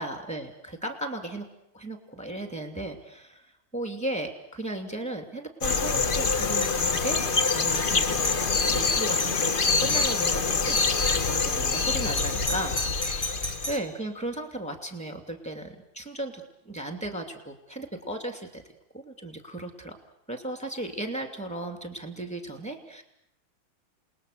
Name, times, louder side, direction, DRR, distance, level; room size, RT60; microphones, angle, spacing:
voice 1, 0.0-1.5 1.7-12.8 13.0-18.6 18.9-20.0 20.3-23.0, right 1 dB, 5° left, 4 dB, 2.5 m, -36 dB
sound 1, 5.6-13.7, left 4 dB, 45° left, 0.6 m, -25 dB
Doorbell, 6.5-6.8 7.3-8.5 8.9-9.0 9.2-9.5 9.9-10.2 10.8-11.1 12.1-13.9, left 1 dB, 20° left, 1.5 m, -35 dB
28.5 x 20.0 x 6.7 m, 0.79 s
omnidirectional pair, 2.3 m